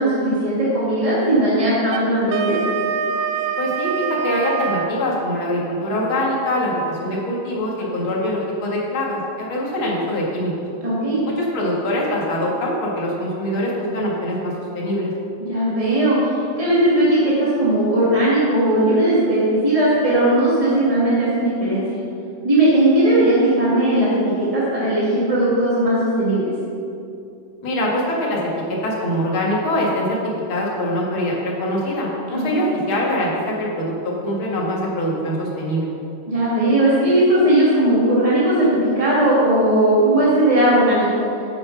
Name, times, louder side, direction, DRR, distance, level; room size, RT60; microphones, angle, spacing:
voice 1, 0.0-2.6 10.8-11.2 15.5-16.3 16.6-21.8 22.4-26.5 32.3-32.7 36.3-41.1, right 1 dB, 15° right, -9 dB, 1.1 m, -18 dB
Wind instrument woodwind instrument, 1.9-4.9, right 7 dB, 80° right, 1.9 m, -24 dB
voice 2, 3.6-10.5 11.4-15.1 27.6-28.4 28.8-30.2 30.5-35.9, left 1 dB, 45° left, -4 dB, 2.0 m, -23 dB
11.0 x 6.7 x 6.0 m, 2.6 s
omnidirectional pair, 4.6 m